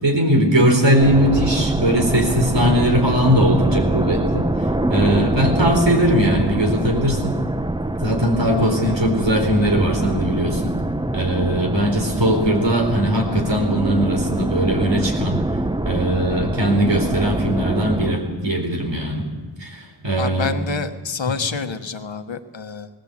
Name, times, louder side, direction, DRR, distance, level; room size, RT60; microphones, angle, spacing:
voice 1, 0.0-4.4 4.9-7.4 8.0-10.8 11.1-15.4 15.8-19.3 19.6-20.5 21.3-21.4, equal, 75° right, 2 dB, 4.5 m, -19 dB
sound 1, 1.0-18.1, right 1 dB, 10° right, 0.7 m, -24 dB
voice 2, 20.2-22.9, left 5 dB, 85° left, 9 dB, 1.2 m, -28 dB
20.0 x 17.0 x 8.3 m, 1.3 s
wide cardioid pair, 50°, 44 cm